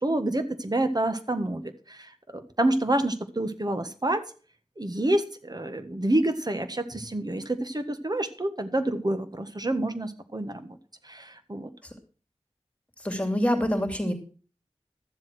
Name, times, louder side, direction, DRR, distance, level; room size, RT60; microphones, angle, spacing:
voice 1, 0.0-4.2 4.8-10.8 11.0-11.7, right 1 dB, 35° right, 8 dB, 1.5 m, -28 dB
voice 2, 13.0-14.1, equal, 10° left, 4 dB, 3.0 m, -26 dB
13.0 x 7.4 x 6.2 m, 0.39 s
wide cardioid pair, 50°, 11 cm